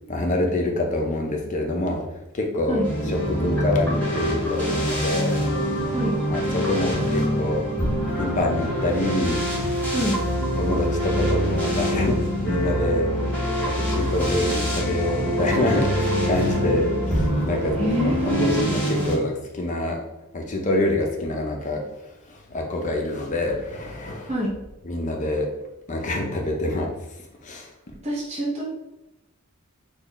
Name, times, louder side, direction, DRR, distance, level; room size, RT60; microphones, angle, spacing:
voice 1, 0.1-2.0 2.3-5.3 6.3-7.7 8.2-9.5 10.6-13.1 13.6-17.8 18.0-20.0 20.3-21.8 22.3-24.3 24.8-25.5 25.9-26.9 27.4-27.7, left 1 dB, 35° left, 1 dB, 0.5 m, -26 dB
sound 1, 2.8-19.2, equal, 5° left, 1.0 m, -25 dB
voice 2, 17.8-18.6 24.3-24.5 28.0-28.6, right 1 dB, 30° right, -5 dB, 0.7 m, -25 dB
3.1 x 2.3 x 3.8 m, 0.96 s
head